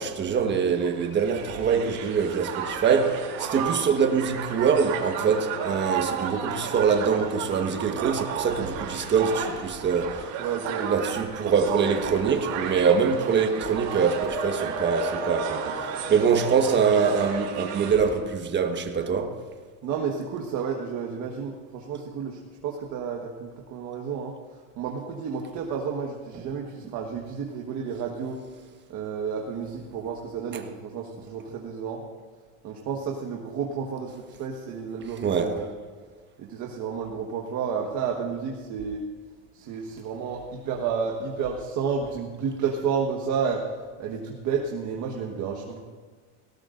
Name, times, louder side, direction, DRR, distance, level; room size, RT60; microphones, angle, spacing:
voice 1, 0.0-10.3 10.8-19.4 30.5-30.6 35.2-35.5, right 6 dB, 30° right, 1.4 m, -24 dB
Crowd, 0.8-18.2, right 6 dB, 80° right, 3.2 m, -33 dB
voice 2, 10.4-10.9 19.8-24.4 24.7-28.4 28.9-32.0 32.6-35.7 36.4-39.0 39.5-43.6 44.0-45.8, right 6 dB, 55° right, 1.5 m, -31 dB
18.5 x 17.5 x 2.6 m
cardioid pair, 135°, 34 cm